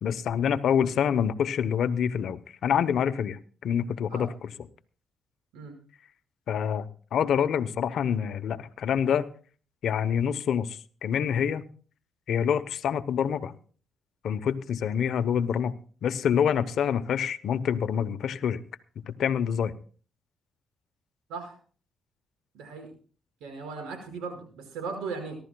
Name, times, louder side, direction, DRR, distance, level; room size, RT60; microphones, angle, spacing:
voice 1, 0.0-4.5 6.5-9.3 9.8-11.6 12.3-13.5 14.2-15.7 16.0-18.6 19.1-19.7, left 8 dB, 70° left, 13 dB, 0.8 m, -26 dB
voice 2, 22.5-22.9 23.4-25.3, right 4 dB, 85° right, 4 dB, 5.3 m, -37 dB
24.5 x 12.0 x 2.3 m, 0.42 s
supercardioid pair, 70°, 0 cm